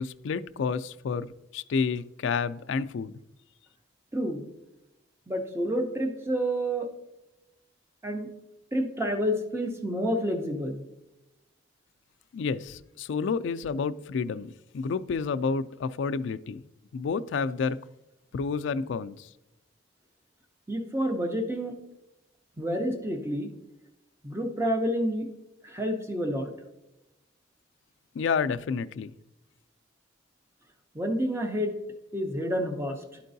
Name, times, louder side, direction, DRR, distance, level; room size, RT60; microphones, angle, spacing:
voice 1, 0.0-3.1 12.3-16.6 16.9-17.8 18.3-19.3 28.1-29.1, left 5 dB, 65° left, 12 dB, 0.3 m, -30 dB
voice 2, 4.1-4.5 5.3-6.9 8.0-8.3 8.7-10.8 20.7-21.7 22.6-23.5 24.2-25.3 25.6-26.5 30.9-31.8 32.1-33.2, equal, 15° right, 4 dB, 0.7 m, -29 dB
11.5 x 4.5 x 2.6 m, 0.94 s
head